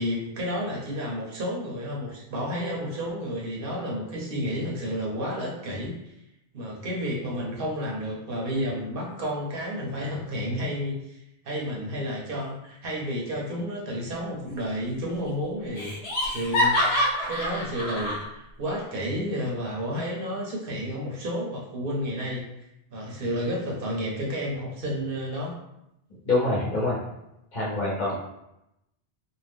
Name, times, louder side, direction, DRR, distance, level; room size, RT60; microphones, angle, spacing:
voice 1, 0.0-5.9 6.5-16.8 17.2-22.5 22.9-25.5, equal, 65° right, -3 dB, 0.9 m, -31 dB
Laughter, 14.4-15.0 15.3-15.4 15.8-18.2, left 1 dB, 85° left, 1.1 m, -26 dB
voice 2, 26.2-27.0 27.5-28.1, left 2 dB, 50° left, -5 dB, 0.9 m, -25 dB
2.6 x 2.1 x 3.3 m, 0.85 s
omnidirectional pair, 1.0 m